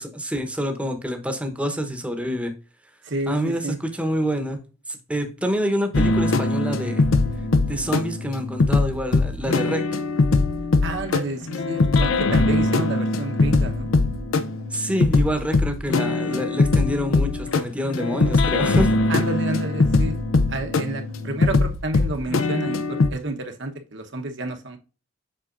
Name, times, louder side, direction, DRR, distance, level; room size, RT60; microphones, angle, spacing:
voice 1, 0.0-2.5 3.3-4.6 4.9-7.1 7.7-9.8 14.7-18.9, equal, 5° right, 1.0 m, -27 dB
voice 2, 3.0-3.8 10.8-14.0 19.1-24.8, right 2 dB, 60° right, 1.1 m, -30 dB
sound 1, 5.9-23.1, left 3 dB, 75° left, 0.6 m, -21 dB
7.6 x 5.8 x 2.6 m
head